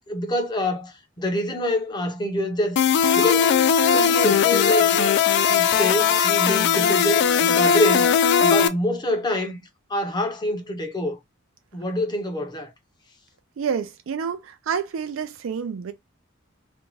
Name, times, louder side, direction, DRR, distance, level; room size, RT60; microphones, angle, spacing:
voice 1, 0.0-2.8 3.1-3.5 3.9-5.2 5.5-8.1 8.4-9.6 9.9-11.2 11.7-12.7, left 1 dB, 20° left, 0.6 m, -26 dB
sound 1, 2.8-8.7, left 7 dB, 60° left, 0.3 m, -19 dB
voice 2, 13.6-15.9, right 6 dB, 80° right, 0.4 m, -28 dB
2.5 x 2.2 x 3.1 m
head